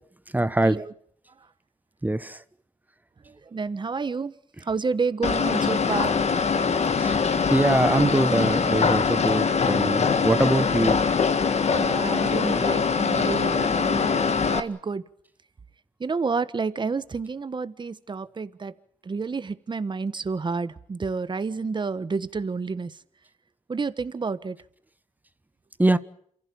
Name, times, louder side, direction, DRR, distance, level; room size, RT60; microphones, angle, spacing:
voice 1, 0.3-0.8 2.0-2.4 7.0-7.2 7.5-11.0 25.8-26.0, right 2 dB, 15° right, 1.1 m, -23 dB
voice 2, 3.3-4.3 4.6-7.4 11.7-14.2 14.5-15.0 16.0-18.7 19.0-22.9 23.7-24.6, right 4 dB, 35° right, 1.3 m, -30 dB
sound 1, 5.2-14.6, left 5 dB, 55° left, 1.7 m, -23 dB
28.5 x 15.5 x 8.7 m
cardioid pair, 90°, 13 cm